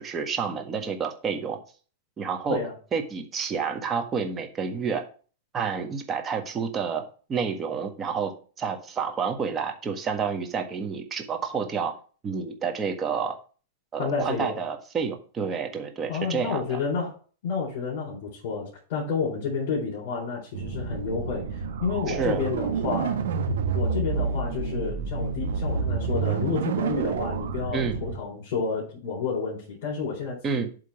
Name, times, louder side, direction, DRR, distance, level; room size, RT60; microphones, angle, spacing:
voice 1, 0.0-1.6 2.2-2.6 2.9-5.0 5.5-7.0 7.3-8.3 8.6-11.9 12.2-13.4 13.9-16.8 22.1-22.4 27.7-28.0 30.4-30.7, right 6 dB, 20° right, 4 dB, 1.6 m, -29 dB
voice 2, 14.0-14.6 16.1-17.1 17.4-21.5 21.8-23.1 23.7-30.6, left 5 dB, 55° left, -3 dB, 4.2 m, -30 dB
sound 1, 20.5-28.2, right 5 dB, 75° right, 1.6 m, -28 dB
8.5 x 3.7 x 5.9 m, 0.39 s
hypercardioid pair, 125°, 0 cm